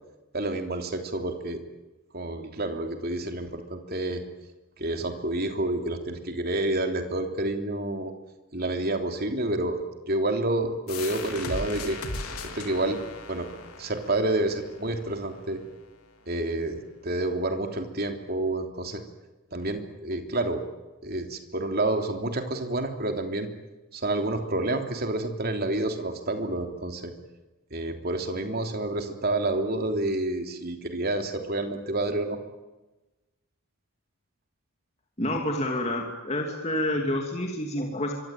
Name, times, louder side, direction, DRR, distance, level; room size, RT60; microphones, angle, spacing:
voice 1, 0.3-1.6 2.1-4.2 4.8-8.1 8.5-12.0 12.5-13.0 13.3-13.5 13.8-15.6 16.3-19.0 19.5-20.6 21.0-23.5 23.9-27.1 27.7-32.4, right 2 dB, 45° right, 5 dB, 3.3 m, -29 dB
sound 1, 10.9-16.3, left 3 dB, 90° left, 3.6 m, -38 dB
voice 2, 35.2-38.1, left 1 dB, 30° left, 2 dB, 2.8 m, -28 dB
25.5 x 24.5 x 9.2 m, 1.1 s
head